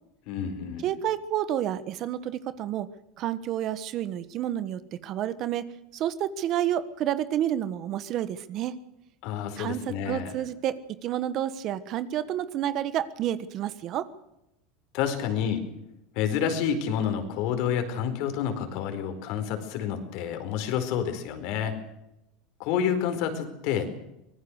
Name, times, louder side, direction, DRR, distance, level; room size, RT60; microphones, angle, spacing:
voice 1, 0.3-0.8 9.2-10.3 14.9-15.6 16.1-21.7 22.6-23.9, left 8 dB, 55° left, 7 dB, 4.6 m, -29 dB
voice 2, 0.8-2.9 3.2-8.7 9.6-14.1, right 11 dB, 40° right, 14 dB, 1.3 m, -30 dB
25.0 x 19.5 x 6.5 m, 0.86 s
supercardioid pair, 150°, 0 cm